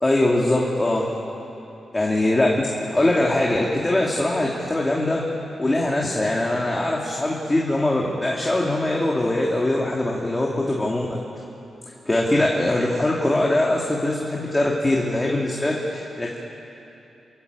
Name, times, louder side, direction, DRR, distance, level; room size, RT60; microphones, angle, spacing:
voice 1, 0.0-1.1 1.9-5.2 5.6-11.2 12.1-16.4, left 1 dB, 20° left, -2 dB, 2.7 m, -22 dB
28.5 x 14.0 x 8.3 m, 2.9 s
cardioid pair, 65°, 0 cm